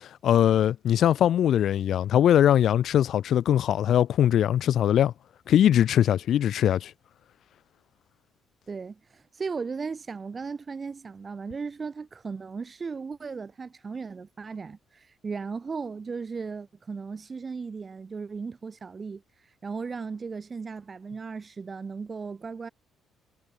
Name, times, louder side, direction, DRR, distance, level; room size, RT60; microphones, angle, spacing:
voice 1, 0.0-5.1 5.5-6.9, left 10 dB, 50° left, 0.6 m, -21 dB
voice 2, 8.7-19.2 19.6-22.7, right 5 dB, 20° right, 1.4 m, -36 dB
cardioid pair, 180°, 0 cm